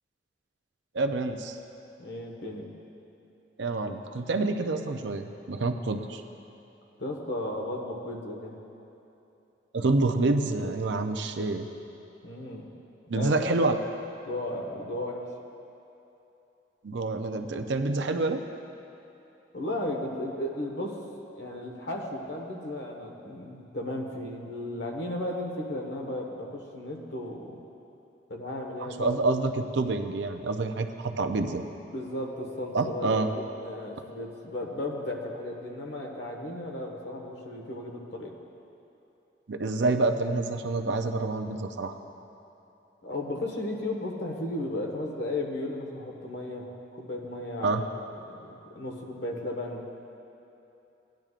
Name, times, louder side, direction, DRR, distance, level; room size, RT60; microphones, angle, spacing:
voice 1, 0.9-1.6 3.6-6.2 9.7-11.7 13.1-13.7 16.8-18.4 28.8-31.6 32.7-33.3 39.5-42.0 47.6-47.8, right 3 dB, 75° right, 6 dB, 0.6 m, -27 dB
voice 2, 2.0-2.7 7.0-8.6 12.2-12.7 13.1-13.3 14.2-15.2 19.5-21.0 21.4-27.6 28.3-29.4 31.8-38.3 43.0-46.7 46.9-49.8, left 1 dB, 70° left, 0 dB, 1.3 m, -35 dB
17.0 x 10.5 x 2.5 m, 2.9 s
head